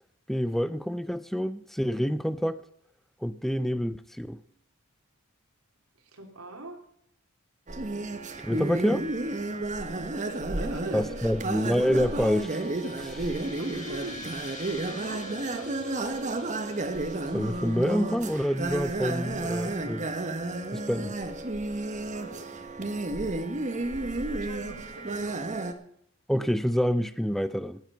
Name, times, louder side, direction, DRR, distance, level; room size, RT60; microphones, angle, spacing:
voice 1, 0.3-2.6 3.2-4.4 8.4-9.1 10.9-12.7 13.0-13.3 17.3-20.1 20.7-21.2 26.3-27.8, equal, ahead, 13 dB, 0.4 m, -27 dB
voice 2, 6.0-6.8 9.8-11.7 13.6-14.2 14.8-16.4 21.7-22.5 23.9-25.7, right 2 dB, 85° right, 2 dB, 3.0 m, -43 dB
sound 1, 7.7-25.7, right 2 dB, 35° right, 1.2 m, -32 dB
sound 2, 10.5-18.8, left 4 dB, 40° left, 2.8 m, -49 dB
18.0 x 7.9 x 5.5 m, 0.70 s
head